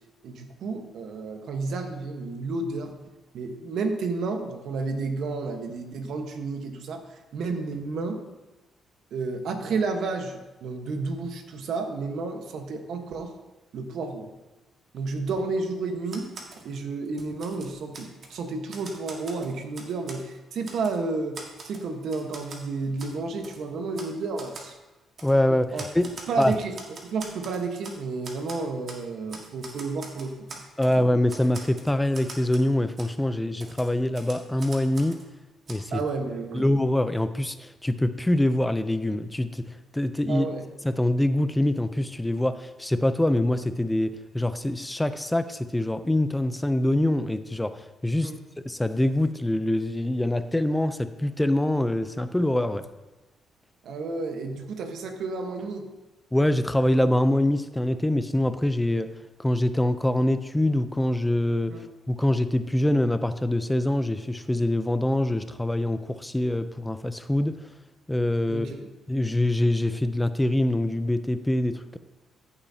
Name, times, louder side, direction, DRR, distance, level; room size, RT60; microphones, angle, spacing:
voice 1, 0.2-3.0 3.3-8.3 9.1-13.4 13.7-14.3 14.9-24.7 25.7-25.8 26.3-30.9 35.9-36.7 40.3-40.7 48.2-48.4 53.8-55.9 61.7-61.8 68.5-68.8, right 3 dB, 70° right, 5 dB, 1.2 m, -31 dB
Typewriter, 16.1-16.6 17.1-18.4 18.7-20.2 20.6-21.0 21.3-22.6 23.0-23.1 23.4-23.6 23.9-24.1 24.4-24.7 25.2-25.3 25.8-28.0 28.2-29.0 29.3-31.0 31.3-32.7 33.0-33.1 33.6-35.3 35.7-35.8, right 3 dB, 50° right, 1.7 m, -43 dB
voice 2, 25.2-26.1 26.4-26.5 30.8-35.2 35.7-36.0 36.5-40.5 40.8-47.8 48.0-48.3 48.7-52.8 56.3-59.1 59.4-61.7 62.1-67.6 68.1-68.7 69.1-72.0, left 1 dB, 10° left, 11 dB, 0.5 m, -24 dB
14.5 x 7.1 x 2.8 m, 1.1 s
cardioid pair, 90°, 0 cm